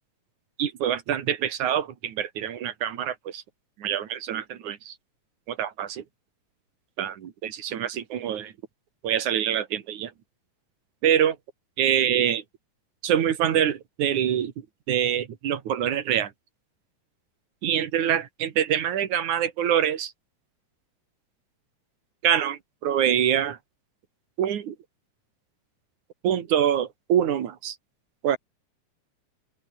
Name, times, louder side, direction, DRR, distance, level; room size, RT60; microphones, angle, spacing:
voice 1, 0.6-3.4 3.8-5.0 5.5-6.0 7.0-8.5 9.0-10.1 11.0-11.4 11.8-12.4 13.0-16.3 17.6-20.1 22.2-23.6 24.4-24.7 26.2-27.8 28.2-28.4, right 9 dB, 70° right, 3.4 m, -25 dB
open air
omnidirectional pair, 3.6 m